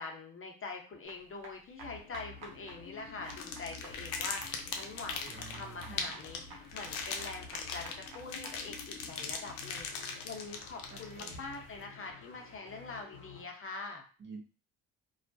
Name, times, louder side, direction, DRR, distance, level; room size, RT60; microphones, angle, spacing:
voice 1, 0.0-14.0, left 3 dB, 30° left, 1 dB, 0.7 m, -44 dB
sound 1, 1.0-8.6, right 3 dB, 65° right, 0.9 m, -52 dB
sound 2, 1.8-13.4, left 5 dB, 65° left, 0.8 m, -52 dB
sound 3, 3.2-11.7, left 5 dB, 90° left, 0.5 m, -40 dB
voice 2, 5.3-6.2 10.9-11.4 14.2-14.4, right 5 dB, 30° right, 0 dB, 0.5 m, -49 dB
2.3 x 2.0 x 2.6 m, 0.36 s
hypercardioid pair, 65°, 40 cm